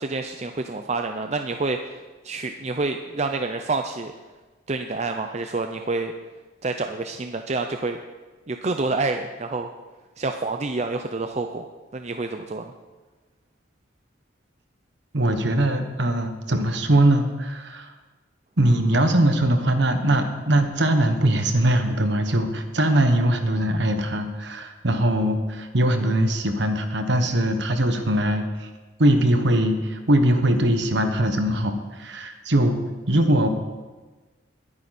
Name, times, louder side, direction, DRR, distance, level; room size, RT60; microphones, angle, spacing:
voice 1, 0.0-4.1 4.7-6.1 6.6-8.0 8.5-9.7 10.2-11.7 11.9-12.7, right 3 dB, 35° right, 6 dB, 0.5 m, -28 dB
voice 2, 15.1-17.9 18.6-28.7 29.0-32.8 33.1-33.5, right 1 dB, 60° right, 6 dB, 1.4 m, -21 dB
21.0 x 9.7 x 4.3 m, 1.3 s
head